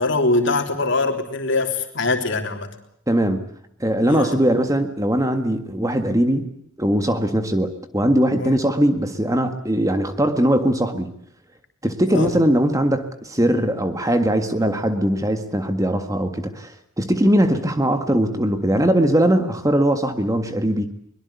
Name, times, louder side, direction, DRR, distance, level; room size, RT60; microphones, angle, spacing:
voice 1, 0.0-2.7 4.1-4.4 8.4-8.6 12.1-12.3, left 2 dB, 55° left, 5 dB, 3.5 m, -22 dB
voice 2, 3.1-3.4 3.8-6.5 6.8-11.1 11.8-16.7 17.0-20.9, right 1 dB, 15° right, 8 dB, 1.7 m, -20 dB
23.5 x 22.0 x 8.3 m, 0.68 s
head